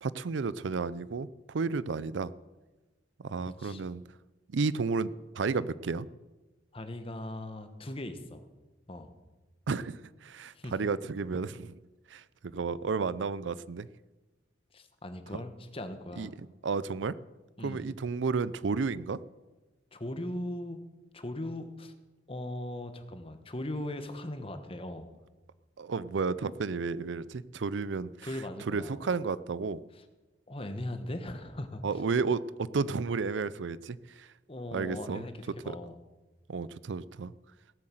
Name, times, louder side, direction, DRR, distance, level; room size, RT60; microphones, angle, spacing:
voice 1, 0.0-2.3 3.2-4.0 4.5-6.1 9.7-11.8 12.1-13.9 15.3-15.4 16.2-17.1 17.6-19.2 25.8-28.3 28.7-29.8 31.8-34.3 34.7-35.2 35.7-35.8 36.5-37.3, right 4 dB, 75° right, 18 dB, 0.5 m, -32 dB
voice 2, 3.5-3.8 6.7-8.4 8.9-9.1 10.5-10.7 14.7-16.3 17.6-17.8 19.9-20.8 21.1-21.9 22.3-25.1 28.2-29.1 29.9-30.0 30.5-31.8 34.5-35.9, left 1 dB, 30° left, 8 dB, 1.2 m, -39 dB
17.5 x 7.7 x 7.7 m, 1.2 s
head